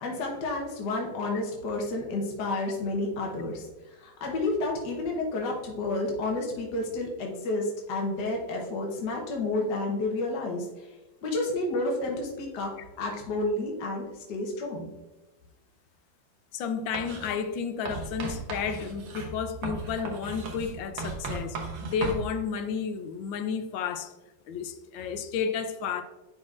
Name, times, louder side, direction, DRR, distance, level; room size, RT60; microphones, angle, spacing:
voice 1, 0.0-11.0 11.2-14.9, left 2 dB, 60° left, 1.6 m, -30 dB
voice 2, 16.5-24.1 24.5-26.0, left 6 dB, 80° left, 1.3 m, -32 dB
Writing, 16.9-17.3 17.9-22.2, right 3 dB, 80° right, 1.9 m, -36 dB
10.0 x 4.1 x 2.5 m
omnidirectional pair, 2.1 m